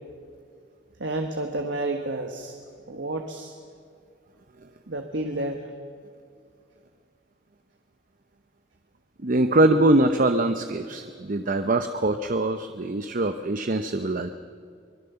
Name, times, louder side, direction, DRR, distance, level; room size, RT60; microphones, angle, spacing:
voice 1, 1.0-2.6 2.9-3.5 4.9-5.6, right 2 dB, 70° right, 4 dB, 1.5 m, -30 dB
voice 2, 9.2-14.3, right 2 dB, 45° right, 8 dB, 0.8 m, -23 dB
24.0 x 21.0 x 7.0 m, 2.4 s
head